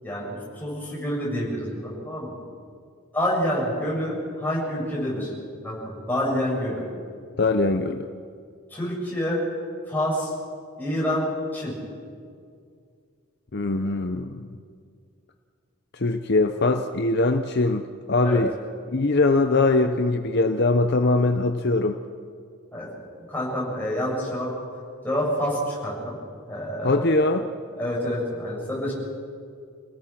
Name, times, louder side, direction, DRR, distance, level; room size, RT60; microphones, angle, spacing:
voice 1, 0.0-2.3 3.1-5.3 5.6-6.8 8.7-9.4 9.9-10.3 10.8-11.7 18.2-18.4 22.7-22.9 23.3-24.5 25.0-26.2 26.5-27.0 27.8-28.9, equal, 10° left, -5 dB, 7.2 m, -27 dB
voice 2, 7.4-8.1 13.5-14.5 15.9-18.5 18.9-22.0 26.8-27.5, left 2 dB, 50° left, 7 dB, 0.8 m, -22 dB
29.0 x 17.5 x 6.0 m, 2.2 s
head